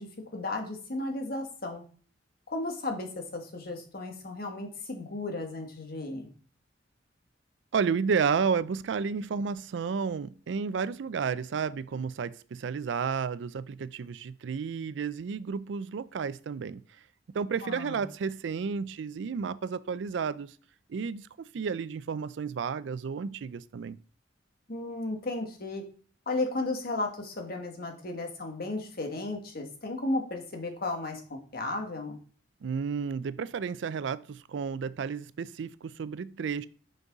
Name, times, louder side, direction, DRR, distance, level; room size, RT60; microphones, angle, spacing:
voice 1, 0.0-1.8 2.5-6.3 17.6-18.0 24.7-25.8 26.3-32.2, left 2 dB, 55° left, 1.4 m, -34 dB
voice 2, 7.7-16.8 17.3-20.5 20.9-24.0 32.6-36.7, right 6 dB, 75° right, 0.4 m, -32 dB
6.1 x 5.3 x 3.9 m
head